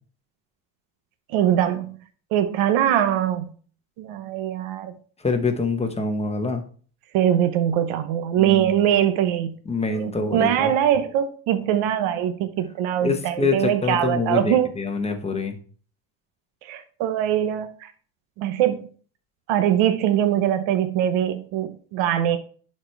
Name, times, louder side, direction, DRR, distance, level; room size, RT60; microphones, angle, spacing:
voice 1, 1.3-2.0 2.3-3.5 4.0-4.9 7.1-9.6 9.9-14.8 16.6-17.9 18.4-18.9 19.5-22.4, right 10 dB, 70° right, 9 dB, 0.9 m, -22 dB
voice 2, 5.2-6.6 8.4-8.7 9.7-10.7 13.0-15.6, left 3 dB, 15° left, 5 dB, 1.0 m, -25 dB
11.0 x 4.5 x 3.3 m, 0.43 s
cardioid pair, 135°, 49 cm